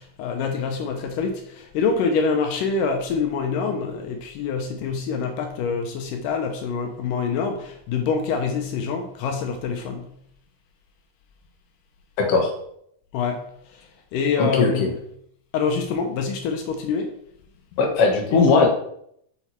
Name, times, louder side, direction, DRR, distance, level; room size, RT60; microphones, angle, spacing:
voice 1, 0.0-10.2 13.1-15.0 15.5-17.1 18.3-18.4, left 5 dB, 80° left, 4 dB, 2.4 m, -26 dB
voice 2, 12.2-12.5 14.4-14.9 17.8-18.7, left 4 dB, 55° left, 0 dB, 2.1 m, -18 dB
6.8 x 6.3 x 4.3 m, 0.71 s
omnidirectional pair, 3.8 m